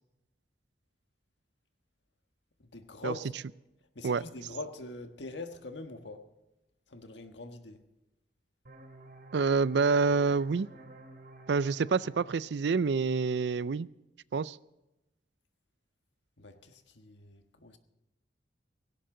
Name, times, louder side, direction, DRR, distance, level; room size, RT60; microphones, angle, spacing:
voice 1, 2.6-3.3 3.9-6.3 6.9-7.8 16.4-17.8, left 2 dB, 85° left, 1.5 m, -43 dB
sound 1, 8.6-14.0, right 2 dB, 55° right, 2.6 m, -53 dB
voice 2, 9.3-10.7 11.5-13.9 14.3-14.6, right 4 dB, 70° right, 0.4 m, -27 dB
17.5 x 17.0 x 3.8 m
head